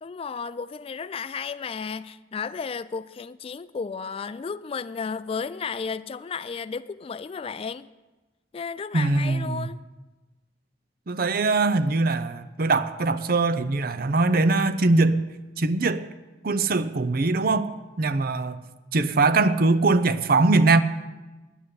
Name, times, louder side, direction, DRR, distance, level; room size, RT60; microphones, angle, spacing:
voice 1, 0.0-7.9 8.5-9.8, left 5 dB, 30° left, 0.3 m, -33 dB
voice 2, 8.9-9.7 11.1-15.2 15.6-16.1 16.4-17.7 18.0-18.6 18.9-20.8, right 3 dB, 55° right, 0.6 m, -22 dB
10.0 x 8.4 x 9.3 m
head